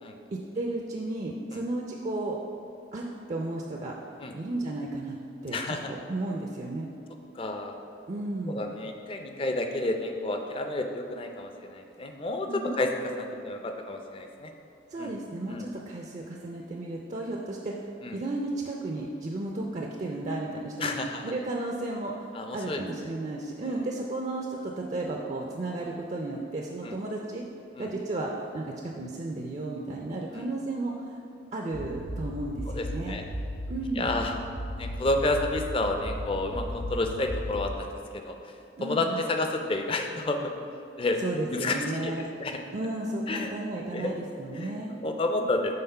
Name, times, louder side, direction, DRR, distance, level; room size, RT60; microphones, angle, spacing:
voice 1, 0.3-2.4 2.9-3.9 4.3-5.2 5.4-6.9 8.1-8.6 12.5-12.8 14.9-17.7 18.1-21.0 21.2-27.4 27.8-31.0 31.5-33.2 33.7-34.1 38.8-39.2 41.2-42.3 42.7-44.9, right 2 dB, 40° right, 0 dB, 0.4 m, -33 dB
voice 2, 5.5-5.9 7.3-7.7 8.5-12.9 13.2-14.5 15.0-15.1 15.5-15.7 18.0-18.2 20.8-21.3 22.3-22.8 23.6-23.8 26.8-26.9 27.7-27.9 30.3-30.4 32.7-33.2 34.0-34.4 34.8-37.9 38.1-40.5 41.0-41.2 41.5-42.6 43.3-43.5 43.9-44.1 44.5-45.7, left 2 dB, 30° left, 4 dB, 0.4 m, -30 dB
sound 1, 31.7-37.7, equal, 85° left, 1.2 m, -36 dB
5.7 x 3.9 x 5.4 m, 2.6 s
head